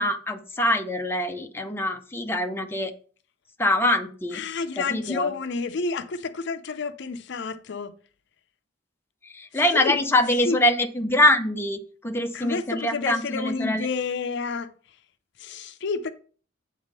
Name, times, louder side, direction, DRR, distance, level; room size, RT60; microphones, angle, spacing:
voice 1, 0.0-2.9 3.6-4.4 4.8-5.3 9.2-13.9, left 1 dB, 10° left, 0.7 m, -24 dB
voice 2, 4.3-8.0 9.7-10.0 10.4-10.6 12.3-14.7 15.4-16.1, left 4 dB, 60° left, 0.5 m, -29 dB
8.0 x 3.5 x 6.5 m
head